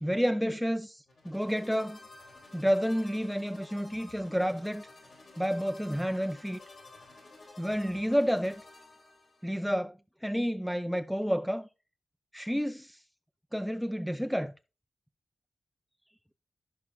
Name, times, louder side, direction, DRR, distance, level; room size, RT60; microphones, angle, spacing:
voice 1, 0.0-2.0 2.5-4.9 5.4-6.6 7.6-8.6 9.4-11.7 12.3-13.0 13.5-14.5, equal, ahead, 0.4 m, -30 dB
sound 1, 1.1-9.6, left 2 dB, 60° left, 3.8 m, -52 dB
15.5 x 6.1 x 2.2 m
wide cardioid pair, 170°, 0 cm